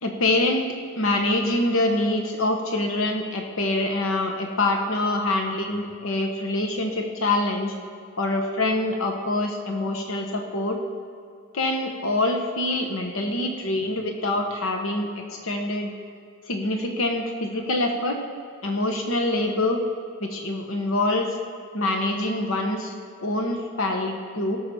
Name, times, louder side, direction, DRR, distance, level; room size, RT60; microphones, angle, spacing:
voice 1, 0.0-7.7 8.2-10.8 11.5-15.9 16.5-18.2 18.6-19.8 20.2-21.4 21.7-22.9 23.2-24.6, left 2 dB, 75° left, 3 dB, 1.0 m, -25 dB
17.5 x 6.8 x 4.2 m, 2.3 s
head